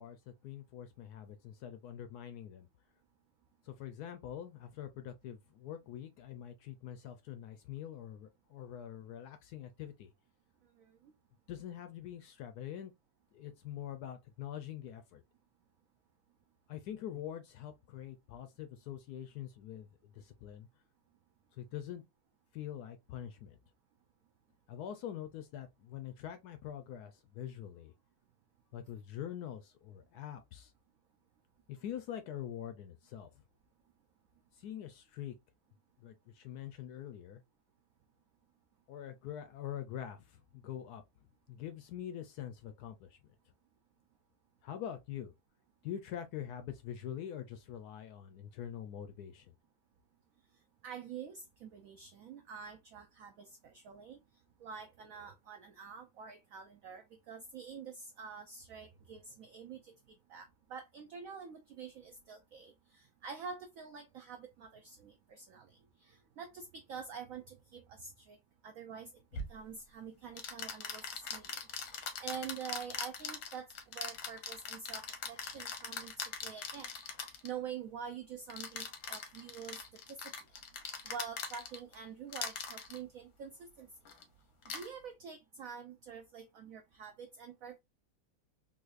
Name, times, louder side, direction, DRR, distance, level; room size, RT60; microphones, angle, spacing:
voice 1, 0.0-2.7 3.6-10.1 11.5-12.9 13.3-15.2 16.7-20.7 21.5-22.0 22.5-23.6 24.7-27.9 28.7-30.7 31.7-33.3 34.5-35.3 36.0-37.4 38.9-41.0 41.5-43.2 44.6-45.3 45.8-49.5, left 10 dB, 70° left, 0.9 m, -44 dB
voice 2, 50.8-54.2 54.6-59.9 60.3-65.7 66.0-68.4 68.6-69.1 69.5-76.1 76.4-76.9 77.2-79.8 80.1-80.2 81.0-83.9 84.7-87.8, right 7 dB, 85° right, 0.7 m, -47 dB
sound 1, 69.3-69.5 70.4-77.5 78.5-81.9 82.3-83.0 84.0-84.2 84.6-84.9, left 6 dB, 90° left, 1.5 m, -41 dB
4.0 x 2.6 x 2.4 m
omnidirectional pair, 2.0 m